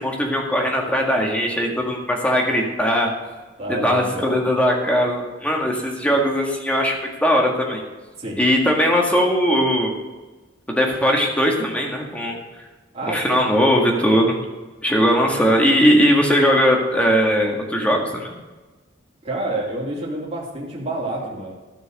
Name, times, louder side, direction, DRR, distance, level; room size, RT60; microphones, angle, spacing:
voice 1, 0.0-3.1 3.8-7.8 8.4-9.9 10.7-12.4 13.1-14.4 14.8-18.3, equal, 5° left, 0 dB, 1.9 m, -19 dB
voice 2, 3.6-4.4 8.2-8.4 12.9-13.5 15.1-15.2 19.2-21.5, right 1 dB, 35° right, -5 dB, 2.8 m, -28 dB
13.5 x 6.2 x 6.6 m, 1.2 s
head